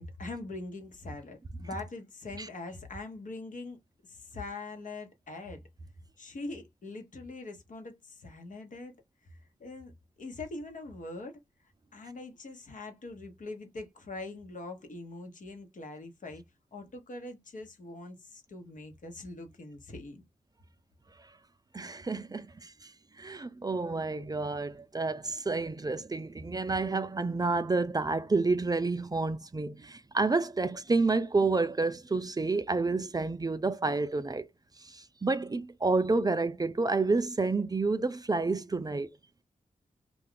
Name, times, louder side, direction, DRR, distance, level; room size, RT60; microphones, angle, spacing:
voice 1, 0.0-3.8 4.1-5.6 6.2-8.9 9.3-9.9 10.2-11.4 11.9-16.4 16.7-20.2, left 2 dB, 65° left, 0.9 m, -42 dB
voice 2, 21.7-22.9 23.2-34.5 34.8-39.1, right 3 dB, 25° right, 0.4 m, -29 dB
2.4 x 2.2 x 3.6 m
cardioid pair, 45°, 14 cm